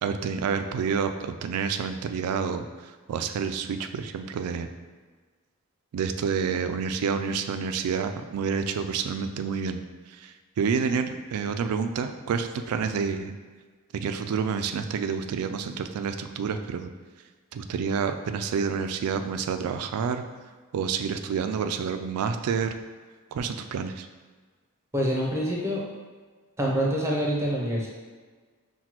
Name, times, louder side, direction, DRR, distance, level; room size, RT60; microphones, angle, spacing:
voice 1, 0.0-2.7 3.1-4.7 5.9-9.8 10.2-13.3 13.9-16.9 17.5-20.2 20.7-22.8 23.3-24.1, right 6 dB, 85° right, 9 dB, 0.3 m, -28 dB
voice 2, 24.9-25.8 26.6-27.9, equal, 10° right, -3 dB, 0.6 m, -26 dB
5.8 x 2.2 x 2.9 m, 1.5 s
head